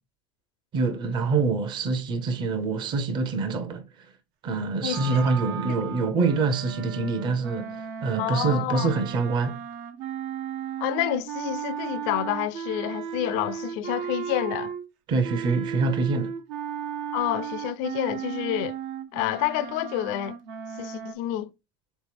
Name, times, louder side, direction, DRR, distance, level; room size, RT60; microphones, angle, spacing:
voice 1, 0.7-3.8 4.4-9.6 15.1-16.3, right 4 dB, 40° right, 0.7 m, -25 dB
sound 1, 4.9-14.9 15.2-21.1, right 7 dB, 75° right, 0.6 m, -35 dB
voice 2, 8.2-8.9 10.8-14.7 17.1-18.8 19.1-20.4 20.8-21.5, left 13 dB, 70° left, 0.4 m, -28 dB
3.6 x 3.1 x 3.3 m
supercardioid pair, 110°, 11 cm